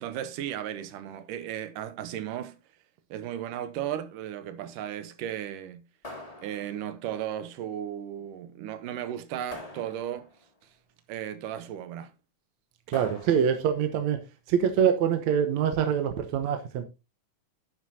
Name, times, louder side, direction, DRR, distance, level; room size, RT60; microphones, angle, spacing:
voice 1, 0.0-2.6 3.1-5.8 6.4-10.3 11.1-12.1, right 10 dB, 90° right, 2.6 m, -35 dB
sound 1, 6.0-7.1 9.5-10.5 12.9-13.8, left 2 dB, 15° left, 1.8 m, -44 dB
voice 2, 12.9-14.2 14.5-16.9, right 8 dB, 70° right, 2.1 m, -25 dB
11.0 x 9.5 x 2.8 m
omnidirectional pair, 3.6 m